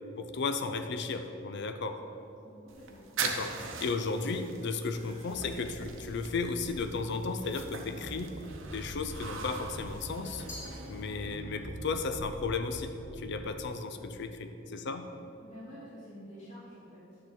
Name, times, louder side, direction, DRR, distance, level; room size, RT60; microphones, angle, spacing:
voice 1, 0.2-2.0 3.2-3.5 3.8-8.4 8.7-10.4 10.9-15.1, left 4 dB, 60° left, 8 dB, 0.5 m, -34 dB
voice 2, 2.4-3.3 14.8-14.9 15.4-17.2, equal, 40° left, -10 dB, 2.3 m, -49 dB
sound 1, 2.7-11.4, right 5 dB, 70° right, 0.9 m, -42 dB
sound 2, 4.9-13.2, right 1 dB, 35° right, 0.8 m, -45 dB
Glass, 10.5-11.7, left 2 dB, 15° left, 2.3 m, -48 dB
9.8 x 3.9 x 7.4 m, 2.7 s
head